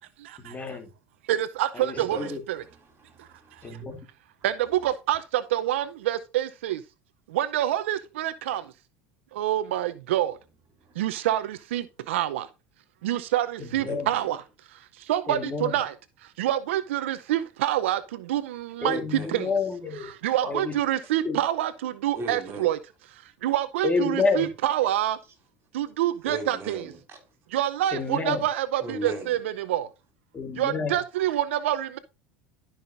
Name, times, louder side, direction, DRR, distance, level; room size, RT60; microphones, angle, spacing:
voice 1, 0.4-0.9 1.7-2.4 3.6-3.9 13.6-14.1 15.3-15.8 18.8-20.1 20.4-20.8 21.2-21.4 23.8-24.5 27.9-28.5 30.3-31.0, left 4 dB, 25° left, 1.8 m, -29 dB
voice 2, 1.3-2.2 4.4-6.8 7.3-8.6 9.3-10.4 11.0-12.5 13.0-14.4 15.1-15.9 16.4-19.0 19.3-19.5 20.2-22.8 23.4-25.2 25.7-26.8 27.5-29.4 29.7-29.9 30.6-32.0, right 13 dB, 90° right, 0.6 m, -26 dB
voice 3, 2.0-4.0 10.7-11.2 13.9-14.3 18.9-19.4 20.4-20.5 22.1-22.7 23.3-23.4 26.2-27.4 28.8-29.4, right 2 dB, 40° right, 4.0 m, -39 dB
12.5 x 5.7 x 2.6 m
supercardioid pair, 95°, 6 cm